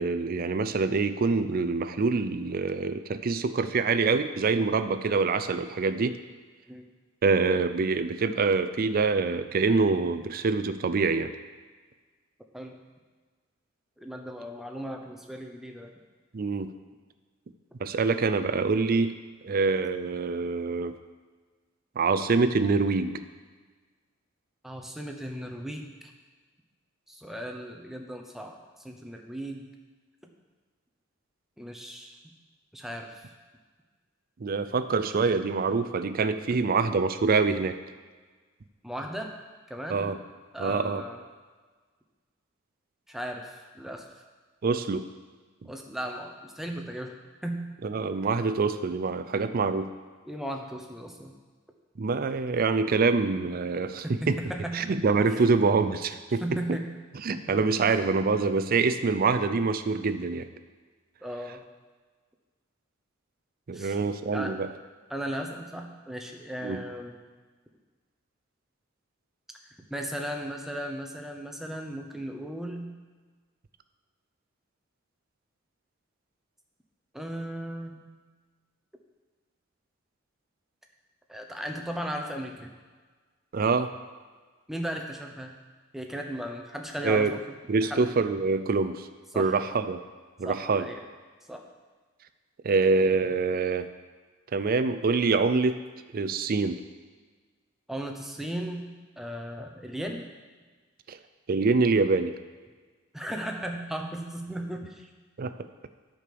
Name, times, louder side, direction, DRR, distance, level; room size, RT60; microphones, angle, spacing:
voice 1, 0.0-6.2 7.2-11.3 16.3-16.7 17.8-19.2 19.4-20.9 22.0-23.1 34.4-37.8 39.9-40.2 40.6-41.0 44.6-45.1 47.8-49.9 52.0-54.4 54.7-56.4 56.7-56.8 57.2-60.5 63.7-64.7 66.6-66.8 83.5-83.9 87.0-87.3 87.7-89.1 89.4-90.0 90.4-90.9 92.6-93.9 94.5-95.8 96.1-96.8 101.1-101.2 101.5-102.3 105.4-105.5, right 4 dB, 45° right, 10 dB, 0.4 m, -25 dB
voice 2, 14.0-15.9 24.6-26.1 27.1-28.6 28.8-29.7 31.6-32.2 32.7-33.3 34.7-34.8 38.8-39.3 39.7-40.1 40.5-41.2 43.1-44.1 45.6-47.7 50.2-51.3 54.0-55.1 56.4-56.9 57.3-57.6 61.2-61.6 63.7-64.0 64.3-64.6 65.1-67.2 69.7-73.0 77.1-78.0 81.3-82.7 84.7-85.6 85.9-87.4 87.8-88.1 89.3-89.5 90.4-91.0 91.5-91.6 97.9-100.3 103.1-105.1, right 1 dB, ahead, 2 dB, 0.8 m, -36 dB
9.7 x 5.2 x 6.8 m, 1.4 s
head